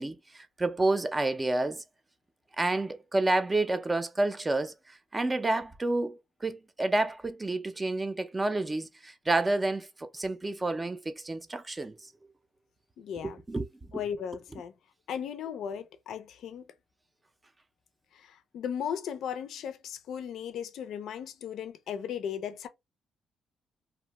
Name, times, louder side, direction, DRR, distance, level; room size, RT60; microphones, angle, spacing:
voice 1, 0.0-1.8 2.6-12.0 13.2-13.7, right 2 dB, 20° right, 0.4 m, -29 dB
voice 2, 13.0-13.4 13.9-14.7 15.1-16.7 18.1-22.7, left 8 dB, 75° left, 0.4 m, -36 dB
2.5 x 2.1 x 2.9 m
cardioid pair, 100°, 0 cm